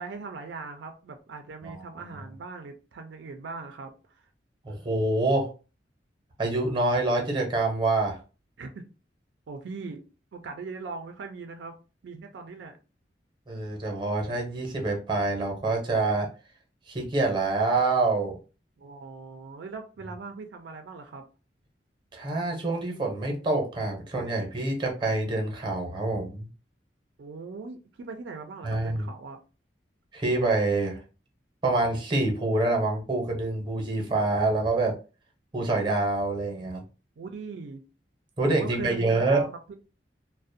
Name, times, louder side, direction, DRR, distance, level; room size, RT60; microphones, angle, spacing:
voice 1, 0.0-4.3 8.6-8.9 9.5-10.0 10.3-11.8 12.0-12.8 18.8-21.2 27.2-29.4 37.2-37.8 38.5-39.7, right 4 dB, 85° right, 6 dB, 0.4 m, -40 dB
voice 2, 4.6-5.5 6.4-8.2 13.5-16.3 16.9-18.4 22.1-26.5 28.6-29.0 30.1-31.0 31.6-34.9 35.5-36.8 38.4-39.4, right 2 dB, 25° right, 2 dB, 0.7 m, -26 dB
2.4 x 2.0 x 2.5 m, 0.33 s
head